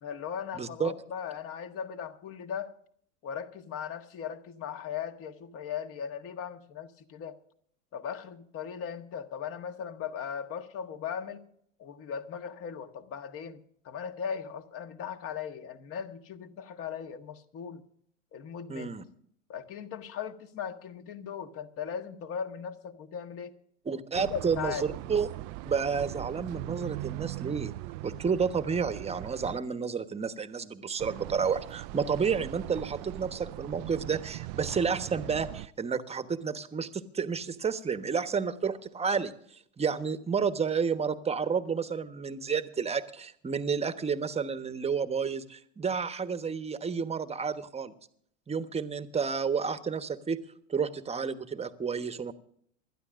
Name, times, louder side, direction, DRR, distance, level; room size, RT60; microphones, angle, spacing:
voice 1, 0.0-2.7 3.2-7.4 7.9-11.4 11.8-17.8 18.3-18.9 19.5-23.6 24.1-24.9, left 7 dB, 35° left, 8 dB, 1.6 m, -38 dB
voice 2, 0.5-0.9 18.7-19.0 23.8-25.3 25.6-27.7 28.0-47.9 48.5-50.4 50.7-52.3, right 6 dB, 15° right, 11 dB, 1.2 m, -31 dB
sound 1, 24.1-29.6 31.0-35.7, right 18 dB, 40° right, 0.4 m, -40 dB
27.0 x 12.5 x 2.5 m, 0.64 s
hypercardioid pair, 90°, 37 cm